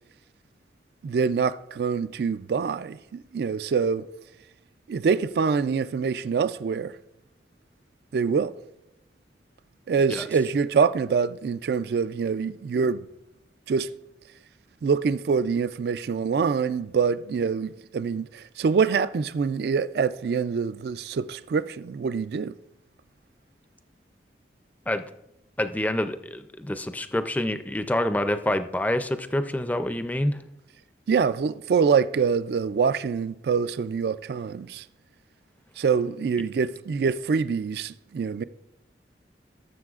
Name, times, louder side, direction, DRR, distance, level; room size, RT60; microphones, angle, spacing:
voice 1, 1.0-4.1 4.9-7.0 8.1-8.5 9.9-13.1 13.7-13.9 14.8-22.6 31.1-34.9 35.8-38.4, right 5 dB, 60° right, 0.3 m, -25 dB
voice 2, 25.6-30.4, left 1 dB, 10° left, 0.4 m, -27 dB
18.0 x 7.4 x 2.4 m
head